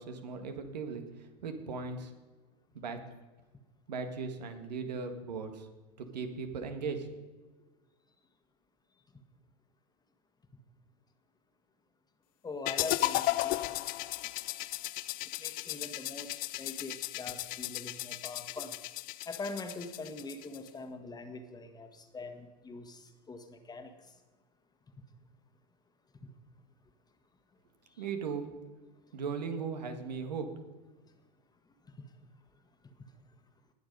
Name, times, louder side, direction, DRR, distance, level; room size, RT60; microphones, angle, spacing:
voice 1, 0.0-2.1 2.7-3.0 3.9-5.7 6.0-7.1 28.0-28.5 29.1-30.6, right 5 dB, 80° right, 7 dB, 1.7 m, -38 dB
voice 2, 12.4-13.8 15.4-18.8 19.3-23.9, left 3 dB, 20° left, 7 dB, 1.5 m, -43 dB
sound 1, 12.7-20.7, left 18 dB, 45° left, 0.4 m, -35 dB
19.5 x 7.0 x 5.3 m, 1.3 s
hypercardioid pair, 90°, 21 cm